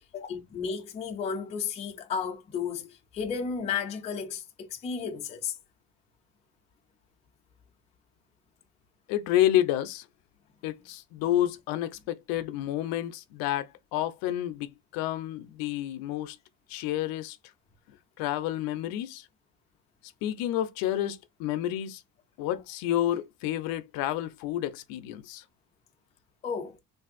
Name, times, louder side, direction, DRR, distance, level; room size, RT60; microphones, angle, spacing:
voice 1, 0.1-5.6 26.4-26.8, left 6 dB, 20° left, 0.4 m, -33 dB
voice 2, 9.1-10.0 10.6-16.4 16.7-17.4 18.2-19.2 20.2-22.0 22.4-25.4, left 12 dB, 70° left, 0.5 m, -29 dB
3.2 x 2.5 x 2.4 m
cardioid pair, 150°, 37 cm